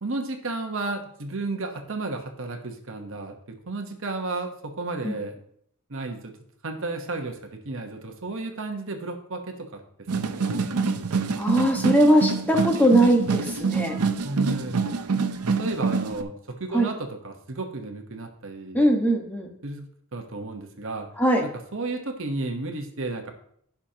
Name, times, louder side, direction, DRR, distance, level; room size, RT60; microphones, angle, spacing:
voice 1, 0.0-5.4 5.9-6.3 6.6-9.8 10.1-10.8 14.2-14.8 15.1-15.3 15.6-18.8 19.6-21.1 21.7-23.3, right 2 dB, 60° right, 4 dB, 1.1 m, -33 dB
sound 1, 10.1-16.2, right 4 dB, 85° right, 0.7 m, -26 dB
voice 2, 11.4-14.0 16.7-16.9 18.7-19.5 21.2-21.4, right 1 dB, 10° left, 1 dB, 1.3 m, -20 dB
15.0 x 5.9 x 2.9 m, 0.68 s
head